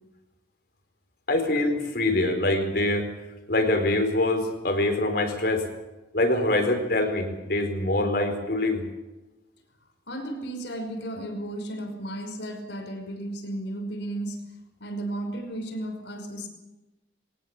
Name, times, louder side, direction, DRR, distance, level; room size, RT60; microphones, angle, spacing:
voice 1, 1.3-3.1 3.5-5.7 6.1-8.8, left 2 dB, 55° left, 5 dB, 4.4 m, -24 dB
voice 2, 10.1-14.4 14.8-16.5, right 1 dB, 75° left, 5 dB, 5.5 m, -34 dB
23.0 x 19.5 x 7.2 m, 1.1 s
head